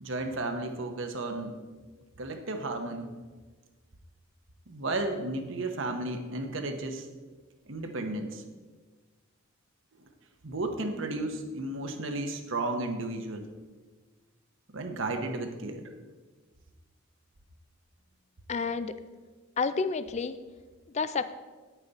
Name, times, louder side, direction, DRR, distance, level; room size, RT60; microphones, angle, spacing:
voice 1, 0.0-1.5 2.2-3.1 4.7-7.1 7.7-8.4 10.4-13.5 14.7-15.9, right 2 dB, 60° right, 5 dB, 0.9 m, -33 dB
voice 2, 18.5-19.0 19.6-20.4 20.9-21.3, left 4 dB, 30° left, 12 dB, 0.3 m, -29 dB
9.6 x 9.0 x 4.0 m, 1.4 s
head